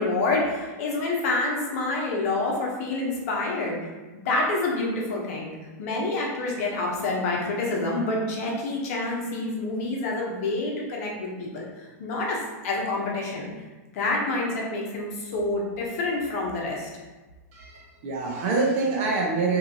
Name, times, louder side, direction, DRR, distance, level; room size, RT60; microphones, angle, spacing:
voice 1, 0.0-3.8 4.2-5.5 5.8-11.7 12.0-13.5 13.9-16.9, left 2 dB, 60° left, -2 dB, 0.8 m, -27 dB
voice 2, 17.5-19.6, right 3 dB, 55° right, -1 dB, 0.7 m, -25 dB
2.8 x 2.4 x 2.7 m, 1.2 s
hypercardioid pair, 125°, 9 cm